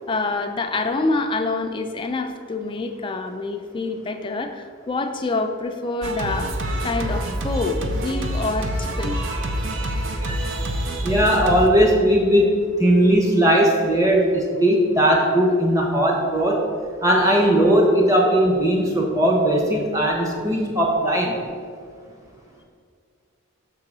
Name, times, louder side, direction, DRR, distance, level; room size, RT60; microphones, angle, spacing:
voice 1, 0.1-6.6 6.8-9.2, left 3 dB, 25° left, 6 dB, 0.3 m, -26 dB
Singing, 6.0-11.7, right 1 dB, 60° right, 0.6 m, -26 dB
voice 2, 11.0-16.6 17.0-21.4, right 1 dB, 15° right, -1 dB, 0.9 m, -18 dB
6.1 x 3.8 x 6.0 m, 2.1 s
head